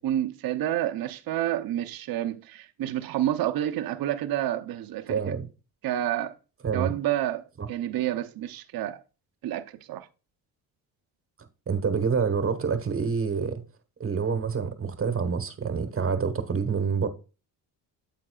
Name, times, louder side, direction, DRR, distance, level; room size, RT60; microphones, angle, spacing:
voice 1, 0.0-5.4 5.8-6.3 6.7-9.0 9.4-10.1, right 12 dB, 55° right, 0.7 m, -29 dB
voice 2, 5.1-5.5 6.6-6.9 7.6-7.7 11.7-13.6 14.0-17.1, right 5 dB, 30° right, 1.2 m, -27 dB
8.6 x 7.7 x 2.3 m
cardioid pair, 100°, 43 cm